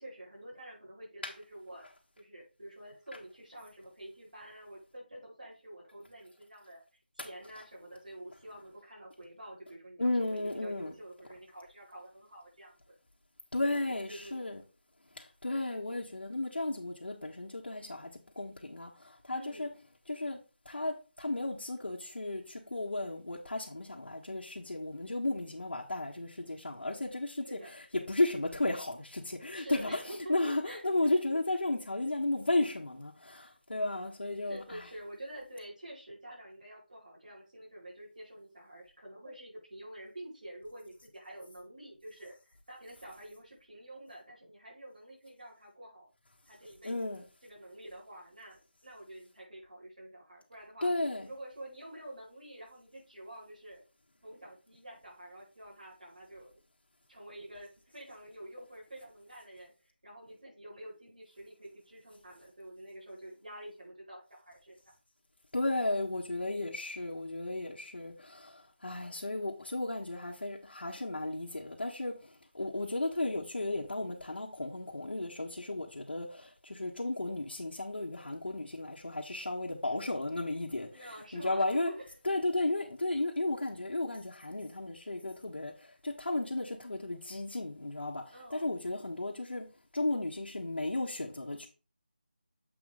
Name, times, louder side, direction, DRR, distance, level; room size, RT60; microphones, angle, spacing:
voice 1, 0.0-1.9 2.2-6.8 7.2-13.0 13.6-14.5 19.3-19.8 27.5-27.8 29.5-30.8 34.4-46.1 46.5-50.9 51.2-53.8 54.2-56.5 57.1-59.7 60.0-64.7 80.9-82.1 88.3-88.7, right 1 dB, 50° right, 4.6 m, -48 dB
voice 2, 10.0-11.0 13.5-14.6 15.2-18.1 18.4-19.7 20.1-20.4 20.7-34.8 46.8-47.2 50.8-51.3 65.5-72.2 72.5-81.9 82.2-85.7 86.0-88.2 88.5-89.7 89.9-91.7, left 2 dB, 85° left, 1.7 m, -34 dB
7.8 x 3.9 x 5.0 m
figure-of-eight pair, 180°, 6 cm